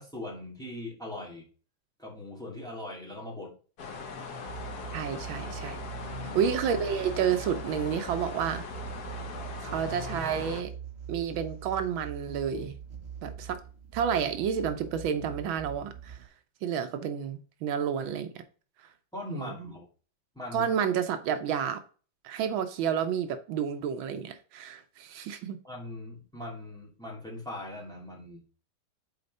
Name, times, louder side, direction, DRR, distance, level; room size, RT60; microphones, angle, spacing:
voice 1, 0.0-1.4 2.0-3.6 6.0-6.5 19.1-19.9 20.3-20.7 25.6-28.4, left 1 dB, ahead, 2.2 m, -40 dB
sound 1, 3.8-10.6, left 4 dB, 55° left, 1.5 m, -40 dB
sound 2, 4.5-16.3, right 8 dB, 50° right, 0.7 m, -42 dB
voice 2, 4.9-5.8 6.4-8.6 9.6-10.7 11.1-12.8 13.2-13.6 13.9-16.2 16.6-18.4 19.3-19.7 20.5-21.8 22.2-25.6, right 8 dB, 80° right, 1.6 m, -30 dB
6.7 x 4.4 x 5.3 m
omnidirectional pair, 2.2 m